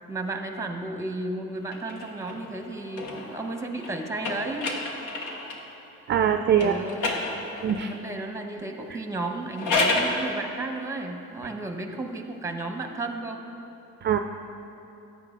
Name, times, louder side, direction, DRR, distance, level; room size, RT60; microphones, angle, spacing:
voice 1, 0.1-4.7 6.6-7.2 7.8-13.4, right 2 dB, 10° right, 4 dB, 0.9 m, -33 dB
sound 1, 1.6-5.7 6.5-7.9 9.3-10.2, left 2 dB, 90° left, 1.1 m, -30 dB
voice 2, 6.1-6.7 7.6-7.9 14.0-14.2, right 8 dB, 40° right, 6 dB, 0.4 m, -22 dB
13.5 x 9.0 x 2.5 m, 3.0 s
cardioid pair, 90°, 30 cm